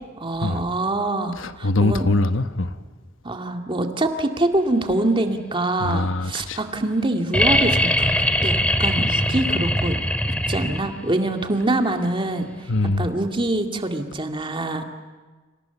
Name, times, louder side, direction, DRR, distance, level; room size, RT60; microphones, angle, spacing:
voice 1, 0.2-2.1 3.2-10.0 10.5-12.5 13.0-14.8, right 2 dB, 25° right, 5 dB, 2.1 m, -24 dB
voice 2, 1.4-2.7 5.8-6.6 12.7-13.1, left 2 dB, 70° left, 10 dB, 1.1 m, -22 dB
sound 1, 7.3-11.1 12.8-12.9, left 1 dB, 5° left, 2.1 m, -21 dB
29.5 x 26.5 x 7.0 m, 1.3 s
head